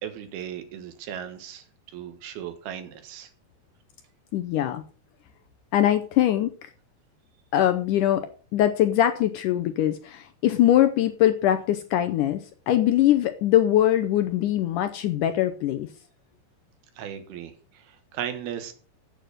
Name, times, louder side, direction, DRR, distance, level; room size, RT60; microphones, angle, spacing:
voice 1, 0.0-3.3 17.0-18.7, right 9 dB, 75° right, 8 dB, 3.3 m, -37 dB
voice 2, 4.3-4.8 5.7-6.7 7.5-8.3 8.5-12.4 12.7-15.9, left 12 dB, 80° left, 9 dB, 1.8 m, -22 dB
8.9 x 7.9 x 6.4 m, 0.39 s
omnidirectional pair, 4.5 m